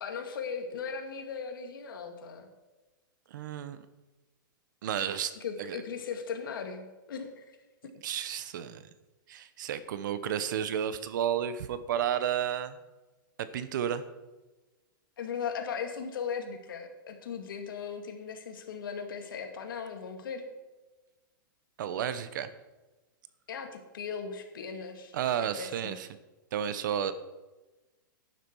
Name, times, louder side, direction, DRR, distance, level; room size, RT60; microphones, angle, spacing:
voice 1, 0.0-2.5 5.4-7.6 15.2-20.5 23.5-26.0, left 6 dB, 75° left, 4 dB, 2.3 m, -38 dB
voice 2, 3.3-3.8 4.8-5.3 5.6-5.8 8.0-8.8 9.3-12.8 13.4-14.0 21.8-22.5 25.1-26.1 26.5-27.1, right 9 dB, 60° right, 13 dB, 1.0 m, -32 dB
12.0 x 9.5 x 4.7 m, 1.1 s
hypercardioid pair, 140°, 11 cm